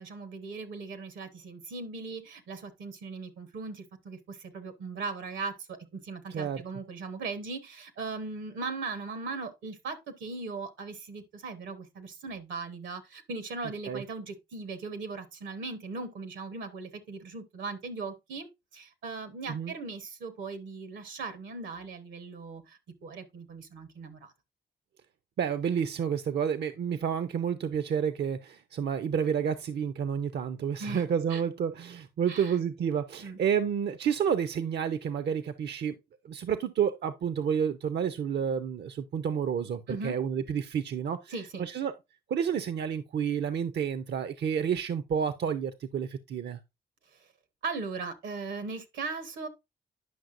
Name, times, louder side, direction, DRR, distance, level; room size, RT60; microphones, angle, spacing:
voice 1, 0.0-18.5 18.7-24.3 30.8-31.0 31.3-31.4 32.3-32.6 33.2-33.4 39.9-40.2 41.3-41.6 47.6-49.5, right 4 dB, 85° right, 1.1 m, -38 dB
voice 2, 6.3-6.6 13.9-14.0 19.5-19.7 25.4-36.0 36.2-41.3 41.6-41.9 42.3-46.6, right 7 dB, 65° right, 0.5 m, -30 dB
9.4 x 5.7 x 2.5 m
supercardioid pair, 55°, 19 cm